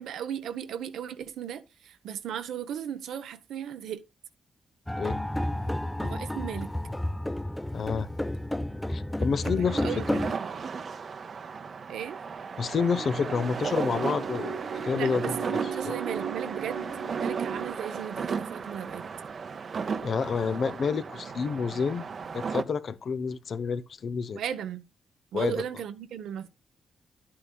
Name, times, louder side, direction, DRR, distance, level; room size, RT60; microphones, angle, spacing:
voice 1, 0.0-4.0 6.0-6.7 9.2-10.2 11.9-12.2 15.0-16.9 17.2-19.0 24.3-24.8 25.3-26.5, right 9 dB, 85° right, 0.8 m, -36 dB
sound 1, 4.9-10.3, left 1 dB, 10° left, 0.5 m, -31 dB
voice 2, 7.7-8.1 8.9-10.0 12.6-16.0 20.0-22.0 22.3-24.4 25.3-25.6, left 6 dB, 60° left, 0.7 m, -29 dB
sound 2, 9.6-22.6, right 5 dB, 55° right, 0.8 m, -35 dB
sound 3, 12.7-17.7, right 6 dB, 70° right, 1.5 m, -36 dB
11.0 x 8.7 x 2.3 m
cardioid pair, 70°, 0 cm